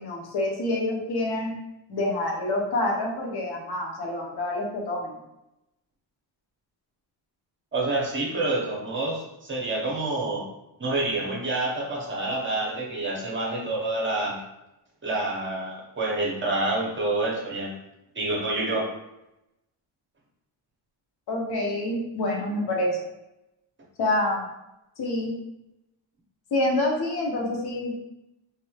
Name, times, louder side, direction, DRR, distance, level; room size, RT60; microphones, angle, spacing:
voice 1, 0.0-1.5 1.9-5.2 21.3-23.0 24.0-24.4 25.0-25.3 26.5-28.0, left 1 dB, 55° left, -1 dB, 0.8 m, -27 dB
voice 2, 7.7-10.4 10.8-14.4 15.0-17.7 18.1-18.8, right 2 dB, 25° right, -3 dB, 0.8 m, -27 dB
3.3 x 3.0 x 2.3 m, 0.90 s
wide cardioid pair, 140°, 47 cm